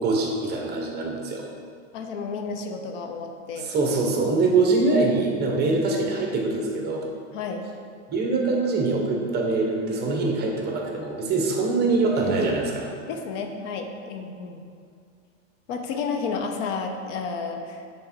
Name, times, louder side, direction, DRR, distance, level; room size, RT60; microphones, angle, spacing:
voice 1, 0.0-1.4 3.6-7.1 8.1-12.9, right 3 dB, 25° right, 0 dB, 0.9 m, -24 dB
voice 2, 1.9-3.7 4.9-5.0 7.3-7.7 13.1-14.6 15.7-17.8, left 5 dB, 70° left, 5 dB, 0.8 m, -31 dB
6.5 x 3.6 x 4.4 m, 2.3 s
supercardioid pair, 140°, 38 cm